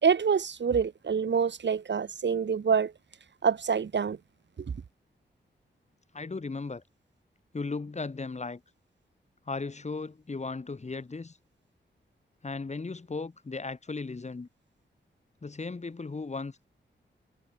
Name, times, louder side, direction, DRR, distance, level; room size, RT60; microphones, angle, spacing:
voice 1, 0.0-2.9 3.4-4.2, right 6 dB, 70° right, 5.0 m, -26 dB
voice 2, 6.1-6.8 7.5-8.6 9.5-11.4 12.4-14.5 15.4-16.7, left 3 dB, 35° left, 7.6 m, -36 dB
wide cardioid pair, 115°, 19 cm